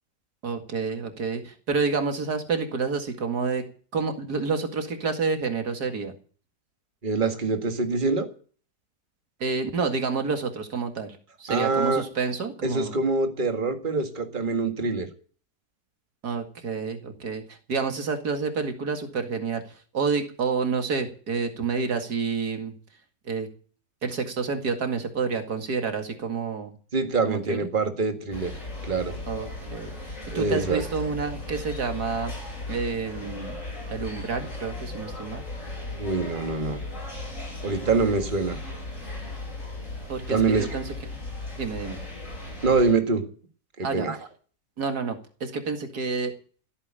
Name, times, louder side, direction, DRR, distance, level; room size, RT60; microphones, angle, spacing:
voice 1, 0.4-3.6 3.9-6.1 9.4-13.0 16.2-19.6 19.9-22.7 23.3-23.5 24.0-26.7 27.2-27.7 29.3-29.9 30.3-32.3 32.7-33.6 33.9-35.4 40.1-41.2 41.6-42.0 43.8-44.1 44.8-46.3, right 5 dB, 90° right, 6 dB, 2.6 m, -29 dB
voice 2, 7.0-8.3 11.5-12.1 12.6-15.1 26.9-28.5 28.8-29.2 30.3-30.8 36.0-36.8 37.6-38.6 40.3-40.8 42.6-43.3 43.8-44.2, right 4 dB, 30° right, 6 dB, 2.0 m, -25 dB
sound 1, 28.3-42.9, left 2 dB, 55° left, 8.1 m, -37 dB
16.0 x 9.0 x 9.0 m, 0.42 s
omnidirectional pair, 1.6 m